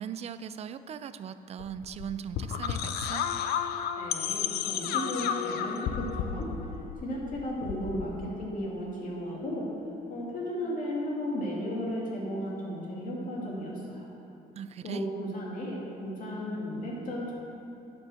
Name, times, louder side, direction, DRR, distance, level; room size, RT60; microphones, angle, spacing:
voice 1, 0.0-3.3 14.6-15.0, right 8 dB, 40° right, 13 dB, 0.4 m, -39 dB
sound 1, 1.6-8.3, left 8 dB, 70° left, 0.5 m, -32 dB
voice 2, 4.0-6.5 7.0-9.7 10.1-14.1 14.8-17.3, equal, 50° left, -4 dB, 2.3 m, -34 dB
9.5 x 5.3 x 6.3 m, 2.8 s
cardioid pair, 110°, 17 cm